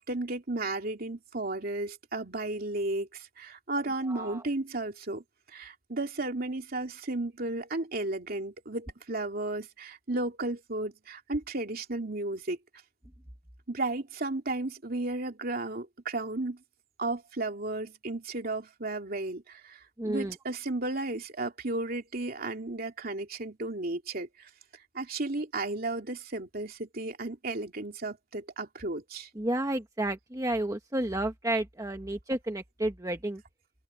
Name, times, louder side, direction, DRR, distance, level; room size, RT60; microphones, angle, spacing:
voice 1, 0.0-12.6 13.7-16.6 17.0-24.5 24.9-29.3, right 2 dB, 55° right, 2.9 m, -34 dB
voice 2, 4.0-4.4 20.0-20.3 29.3-33.4, right 1 dB, 20° right, 1.2 m, -31 dB
head